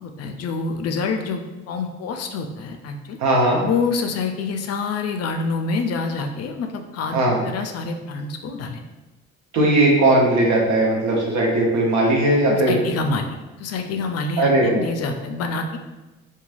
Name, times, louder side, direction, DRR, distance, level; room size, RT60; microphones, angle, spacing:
voice 1, 0.0-3.2 3.6-8.8 12.5-15.8, left 4 dB, 55° left, 5 dB, 0.4 m, -27 dB
voice 2, 3.2-3.6 7.1-7.4 9.5-12.8 14.4-14.8, right 1 dB, 70° right, -2 dB, 0.8 m, -18 dB
3.0 x 2.2 x 2.4 m, 1.1 s
supercardioid pair, 65°, 30 cm